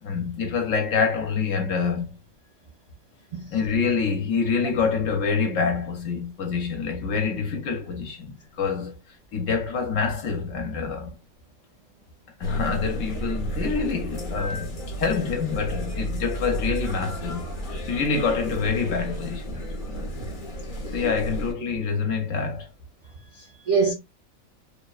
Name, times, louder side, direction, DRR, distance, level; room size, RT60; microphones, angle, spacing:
voice 1, 0.0-2.2 3.5-8.9 9.3-11.1 12.4-17.5 17.9-19.7 20.9-22.7, left 5 dB, 65° left, 1.0 m, -26 dB
sound 1, 12.4-21.5, equal, 50° left, 0.7 m, -32 dB
voice 2, 23.4-23.9, right 5 dB, 35° right, 0.6 m, -25 dB
2.8 x 2.1 x 2.3 m
omnidirectional pair, 1.5 m